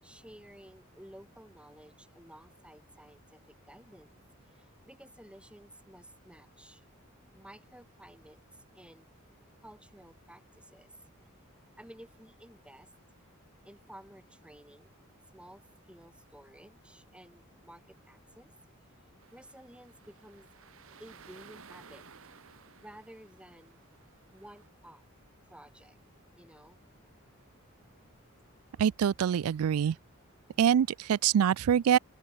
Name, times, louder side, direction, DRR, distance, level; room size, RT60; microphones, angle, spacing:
voice 1, 0.0-4.2 4.5-6.8 7.3-9.1 9.6-10.9 11.8-12.9 13.6-14.9 15.3-18.5 19.3-20.5 21.0-22.1 22.8-23.8 24.3-25.0 25.5-26.0 26.4-26.8, right 1 dB, 5° right, 7.0 m, -53 dB
sound 1, 19.2-24.7, right 6 dB, 70° right, 1.4 m, -56 dB
voice 2, 28.8-30.0 30.6-32.0, right 8 dB, 85° right, 0.3 m, -25 dB
head